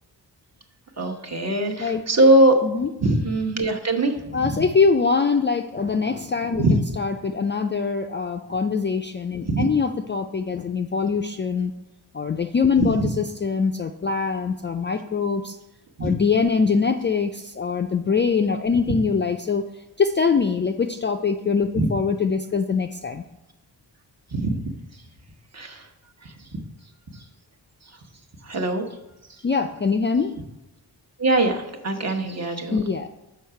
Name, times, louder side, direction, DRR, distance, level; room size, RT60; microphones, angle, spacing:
voice 1, 1.0-2.6 3.0-4.2 6.6-6.7 9.4-9.7 12.8-12.9 16.0-16.1 21.8-21.9 24.3-24.5 25.5-25.8 28.5-28.9 31.2-32.8, right 2 dB, 35° right, 2 dB, 1.1 m, -21 dB
voice 2, 4.3-11.7 12.1-15.6 16.0-19.6 20.0-23.2 29.4-30.3 32.7-33.1, left 5 dB, 30° left, 5 dB, 0.3 m, -23 dB
6.3 x 4.9 x 5.6 m, 0.95 s
cardioid pair, 70°, 43 cm